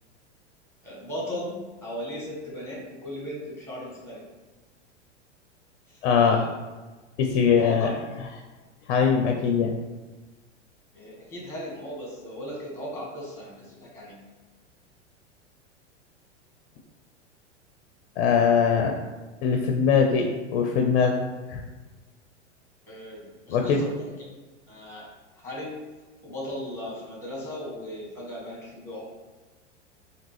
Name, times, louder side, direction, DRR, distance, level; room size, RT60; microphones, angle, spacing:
voice 1, 0.8-4.2 5.9-6.5 7.6-7.9 10.9-14.2 22.9-23.9 24.7-25.0 25.3-25.8 26.2-29.0, equal, 5° left, -3 dB, 1.1 m, -37 dB
voice 2, 6.0-6.4 7.2-7.9 8.9-9.7 18.2-18.9 19.4-21.6 23.5-23.8, left 6 dB, 50° left, 2 dB, 0.5 m, -22 dB
3.5 x 2.2 x 3.2 m, 1.2 s
hypercardioid pair, 100°, 37 cm